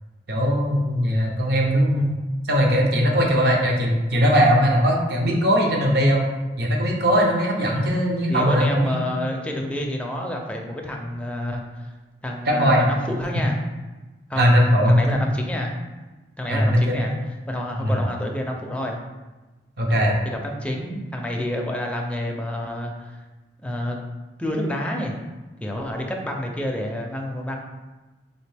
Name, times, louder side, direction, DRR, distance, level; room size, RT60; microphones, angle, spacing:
voice 1, 0.3-2.2 2.5-6.2 6.6-9.0 12.5-12.8 14.4-15.2 16.5-17.1 17.8-18.0 19.8-20.2, equal, 60° right, -1 dB, 0.8 m, -19 dB
voice 2, 8.3-11.9 12.2-13.6 14.3-14.5 14.9-15.7 16.4-17.1 17.5-19.0 20.2-23.2 23.6-24.0 24.4-25.2 25.6-27.6, left 1 dB, 5° left, 1 dB, 0.4 m, -28 dB
4.1 x 2.7 x 3.4 m, 1.2 s
head